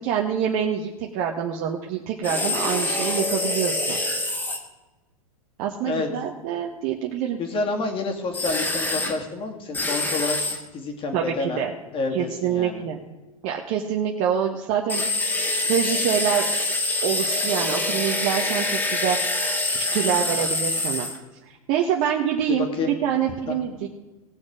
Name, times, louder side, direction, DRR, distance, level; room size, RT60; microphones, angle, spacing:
voice 1, 0.0-4.0 5.6-7.4 11.1-11.7 12.1-13.0 13.4-15.0 15.6-16.5 17.0-19.2 19.9-21.1 21.4-23.9, right 9 dB, 45° right, 1 dB, 1.4 m, -26 dB
sound 1, 2.2-4.6 8.3-9.1 9.7-10.6 14.9-21.2, left 2 dB, 10° left, 2.1 m, -25 dB
voice 2, 7.4-10.4 10.7-11.6 11.9-12.8 22.7-22.9 23.5-23.6, left 3 dB, 30° left, 3 dB, 2.5 m, -28 dB
19.0 x 6.4 x 5.0 m, 1.2 s
hypercardioid pair, 105°, 18 cm